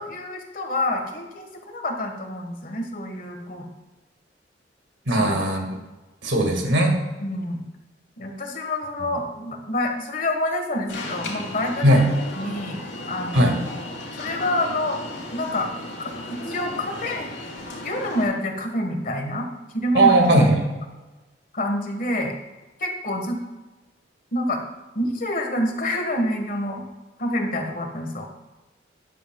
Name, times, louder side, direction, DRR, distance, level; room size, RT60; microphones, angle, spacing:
voice 1, 0.0-3.7 5.1-5.3 7.2-7.6 8.2-12.0 12.3-13.8 14.2-15.0 15.3-15.7 16.0-17.3 17.8-19.5 19.7-20.1 21.5-22.4 22.8-23.4 24.3-24.6 24.9-26.8 27.2-28.3, left 1 dB, 50° left, 3 dB, 1.5 m, -27 dB
voice 2, 5.1-5.7 6.2-6.9 11.8-12.0 13.3-13.6 20.0-20.6, right 1 dB, 85° right, 3 dB, 2.0 m, -18 dB
Alarm, 10.9-18.2, left 1 dB, 85° left, 2.6 m, -35 dB
12.5 x 10.0 x 2.3 m, 1.1 s
head